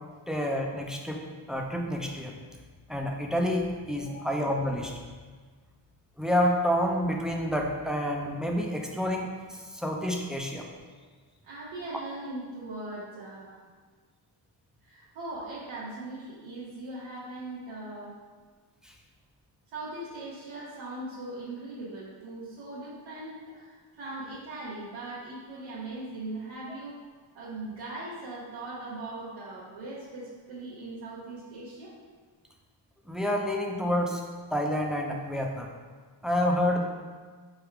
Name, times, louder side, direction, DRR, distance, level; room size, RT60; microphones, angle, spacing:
voice 1, 0.3-1.2 1.5-2.3 2.9-4.9 6.2-10.6 18.8-18.9 33.1-34.2 34.5-35.7 36.2-36.8, equal, ahead, 0 dB, 0.4 m, -28 dB
voice 2, 4.0-4.3 11.4-13.6 14.8-18.1 19.7-27.0 27.3-32.0, right 2 dB, 85° right, -9 dB, 0.9 m, -40 dB
3.4 x 2.3 x 4.5 m, 1.5 s
cardioid pair, 80°, 45 cm